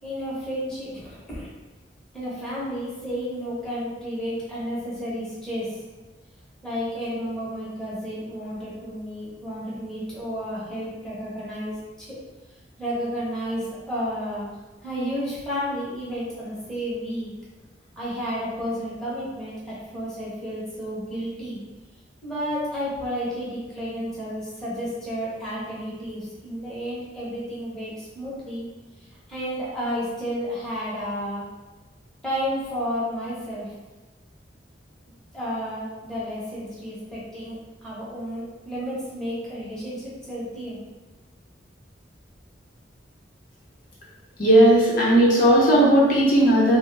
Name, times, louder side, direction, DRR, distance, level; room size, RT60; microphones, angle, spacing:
voice 1, 0.0-1.5 2.1-5.8 6.6-12.2 12.8-14.5 14.8-17.3 18.0-21.6 22.2-28.6 29.0-31.4 32.2-33.7 35.3-40.8, equal, 5° left, -10 dB, 0.9 m, -31 dB
voice 2, 44.4-46.8, right 1 dB, 50° left, -6 dB, 0.7 m, -16 dB
3.1 x 2.1 x 3.2 m, 1.2 s
head